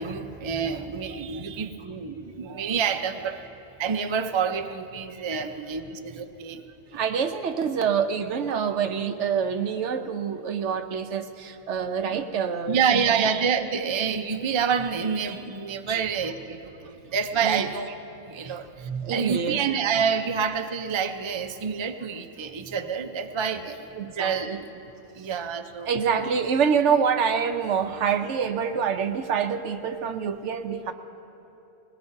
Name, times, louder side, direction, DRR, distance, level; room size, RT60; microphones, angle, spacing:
voice 1, 0.0-3.4 3.8-6.6 12.7-23.8 24.0-24.6 25.2-25.9, right 6 dB, 45° right, 6 dB, 0.3 m, -28 dB
voice 2, 6.9-13.3 15.9-16.0 16.8-17.1 17.4-17.7 18.5-18.6 18.8-19.6 23.6-24.6 25.3-25.4 25.9-30.9, right 7 dB, 65° right, 8 dB, 1.0 m, -27 dB
21.0 x 20.0 x 2.6 m, 2.9 s
omnidirectional pair, 1.4 m